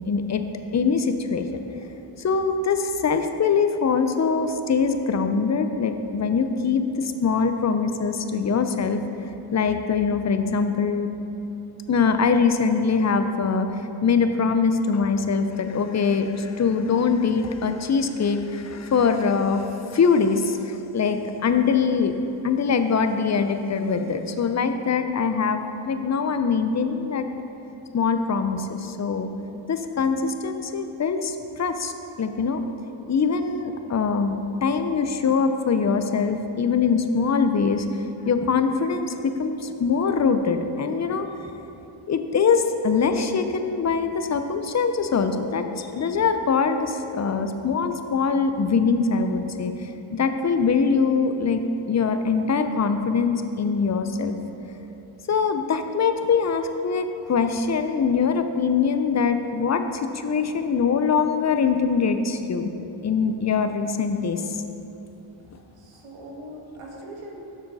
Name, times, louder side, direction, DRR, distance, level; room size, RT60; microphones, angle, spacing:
voice 1, 0.1-0.4 0.7-1.6 2.2-9.0 9.5-11.1 11.9-22.1 22.4-27.3 27.9-29.3 29.7-31.9 32.2-32.6 33.1-34.4 34.6-37.9 38.2-41.3 42.1-54.5 55.3-62.7 63.0-64.6, left 5 dB, 35° left, 8 dB, 0.5 m, -23 dB
voice 2, 65.8-67.4, right 1 dB, 90° right, -2 dB, 1.4 m, -41 dB
7.1 x 6.3 x 4.1 m, 2.9 s
cardioid pair, 60°, 50 cm